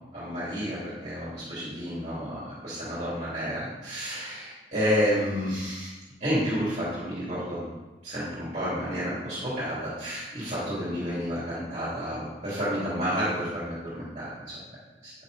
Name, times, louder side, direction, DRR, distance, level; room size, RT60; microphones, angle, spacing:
voice 1, 0.1-5.9 6.2-7.7 8.0-14.6 15.0-15.1, equal, 40° right, -11 dB, 3.2 m, -30 dB
9.3 x 6.6 x 5.1 m, 1.1 s
head